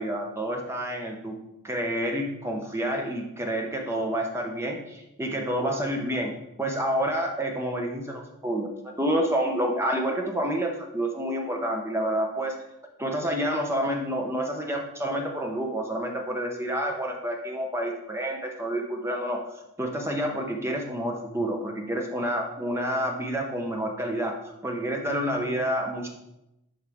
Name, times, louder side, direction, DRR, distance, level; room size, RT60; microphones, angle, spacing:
voice 1, 0.0-1.3 1.6-6.3 6.6-12.5 13.0-24.3 24.6-26.1, equal, 10° right, 1 dB, 0.8 m, -29 dB
11.0 x 4.4 x 3.5 m, 0.87 s
head